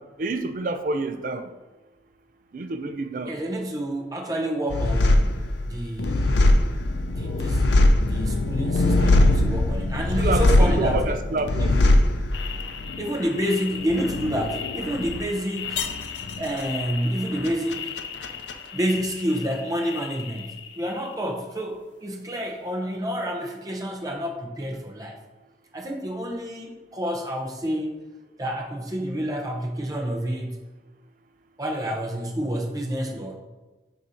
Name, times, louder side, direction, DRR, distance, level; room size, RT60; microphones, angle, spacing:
voice 1, 0.2-1.4 2.5-3.3 10.2-11.7, right 2 dB, 50° right, 8 dB, 0.4 m, -28 dB
voice 2, 3.3-5.4 5.6-6.3 7.1-7.7 8.0-11.1 11.6-11.7 13.0-15.9 16.4-17.9 18.7-25.2 25.7-28.0 28.4-30.6 31.6-33.4, equal, 20° right, 1 dB, 0.8 m, -29 dB
sound 1, 4.7-19.6 19.9-20.7, left 2 dB, 85° left, 0.5 m, -22 dB
6.8 x 2.8 x 5.0 m, 1.2 s
head